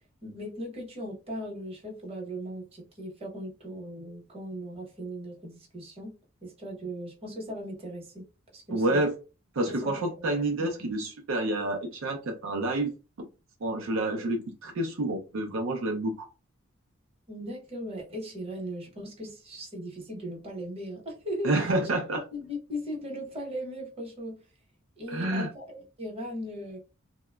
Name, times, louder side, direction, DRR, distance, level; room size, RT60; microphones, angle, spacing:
voice 1, 0.2-6.1 6.4-8.2 8.5-9.1 9.7-9.9 10.2-10.3 17.3-21.7 22.3-24.4 25.0-26.8, equal, 30° right, 0.9 m, -38 dB
voice 2, 8.7-9.2 9.5-12.9 13.6-16.3 21.4-22.2 25.1-25.5, right 2 dB, 70° right, 0.5 m, -28 dB
2.9 x 2.1 x 2.2 m
head